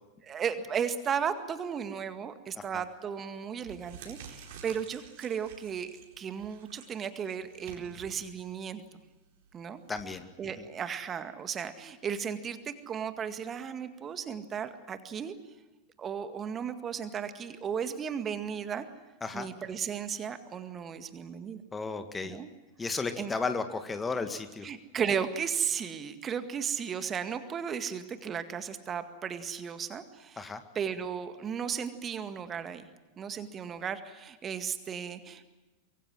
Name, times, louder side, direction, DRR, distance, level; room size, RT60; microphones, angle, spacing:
voice 1, 0.2-8.8 9.5-9.8 10.4-15.4 16.0-18.9 19.3-21.6 22.2-22.5 23.2-23.3 24.6-32.9 33.2-35.5, right 7 dB, 25° right, 10 dB, 1.9 m, -35 dB
sound 1, 3.0-3.1 3.5-10.0, right 6 dB, 50° right, 4.2 m, -51 dB
voice 2, 9.9-10.2 19.2-19.5 21.7-22.4 22.8-24.7 30.4-30.6, left 4 dB, 15° left, 9 dB, 1.9 m, -33 dB
24.5 x 23.5 x 7.6 m, 1.1 s
figure-of-eight pair, 90°, 0 cm